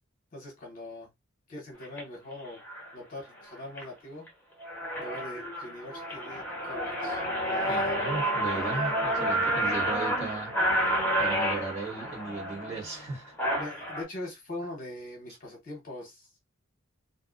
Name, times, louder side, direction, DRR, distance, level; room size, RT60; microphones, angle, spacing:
voice 1, 0.3-1.1 1.5-2.6 2.9-4.3 5.0-8.0 13.5-16.4, left 1 dB, 40° left, 0.9 m, -42 dB
sound 1, 1.8-2.0 2.7-2.9 3.4-3.8 4.3-4.4 4.6-14.0, right 1 dB, 10° left, 1.0 m, -30 dB
voice 2, 7.6-13.3, right 3 dB, 35° right, 1.4 m, -37 dB
2.6 x 2.3 x 2.4 m
head